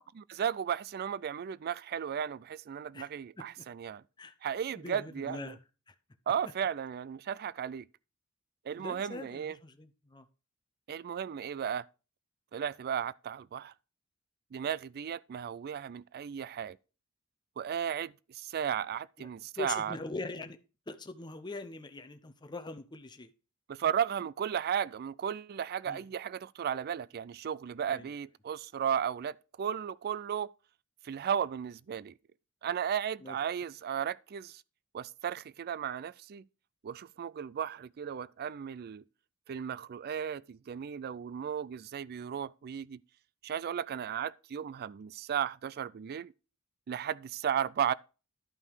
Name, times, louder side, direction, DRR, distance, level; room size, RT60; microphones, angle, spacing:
voice 1, 0.1-4.0 4.4-5.6 6.3-7.9 8.7-9.6 10.9-11.9 12.5-13.7 14.5-16.8 17.6-20.0 23.7-30.5 31.0-32.1 32.6-34.6 34.9-36.4 36.8-39.0 39.5-43.0 43.4-46.3 46.9-47.9, right 8 dB, 45° right, 0.3 m, -35 dB
voice 2, 4.8-5.6 5.9-6.0 8.8-10.2 19.2-19.3 19.6-20.6 20.9-23.3 25.9-26.0 27.9-28.1 33.2-33.4, left 3 dB, 20° left, 0.7 m, -42 dB
11.5 x 5.4 x 4.6 m
head